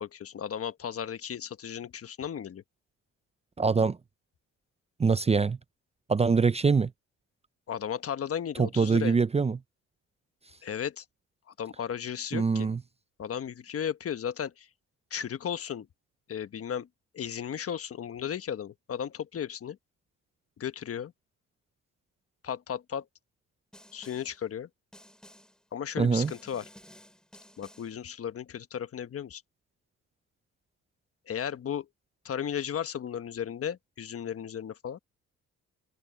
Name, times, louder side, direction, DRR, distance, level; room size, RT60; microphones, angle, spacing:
voice 1, 0.0-2.6 7.7-9.2 10.6-11.0 11.6-12.7 13.2-14.7 15.1-15.9 16.3-16.9 17.1-19.8 20.6-21.1 22.4-23.1 23.9-24.7 25.7-26.6 27.6-29.4 31.3-31.9 32.2-35.0, left 8 dB, 50° left, 1.2 m, -35 dB
voice 2, 3.6-4.0 5.0-5.6 6.1-6.9 8.6-9.6 12.3-12.8 26.0-26.3, right 5 dB, 20° right, 0.5 m, -24 dB
Snare drum, 23.7-24.4 24.9-25.6 26.1-28.0, equal, ahead, 7.5 m, -54 dB
cardioid pair, 90°, 30 cm